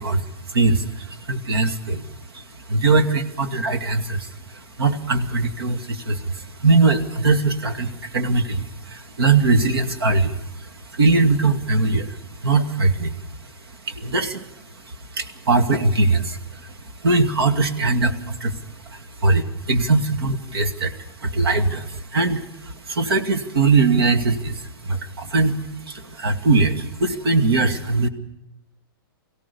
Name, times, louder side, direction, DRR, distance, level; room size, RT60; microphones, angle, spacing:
voice 1, 0.0-2.1 2.3-13.5 13.8-14.5 14.8-25.6 25.9-28.1, right 3 dB, 85° right, 6 dB, 2.3 m, -21 dB
23.5 x 17.0 x 6.9 m, 0.86 s
hypercardioid pair, 170°, 12 cm